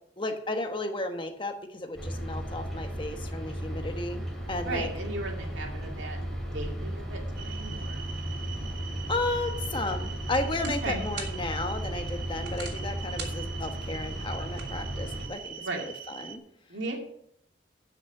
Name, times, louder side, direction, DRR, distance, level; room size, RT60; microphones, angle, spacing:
voice 1, 0.2-4.9 9.1-16.4, left 2 dB, 25° left, 6 dB, 1.2 m, -33 dB
sound 1, 1.9-15.3, equal, ahead, 2.8 m, -35 dB
voice 2, 4.6-8.0 10.6-11.0 15.6-15.8 16.7-17.0, right 2 dB, 90° right, 1 dB, 2.5 m, -36 dB
sound 2, 7.4-16.4, right 8 dB, 50° right, 1.3 m, -43 dB
sound 3, 9.4-15.4, right 5 dB, 65° right, 2.9 m, -47 dB
13.0 x 6.3 x 6.0 m, 0.72 s
head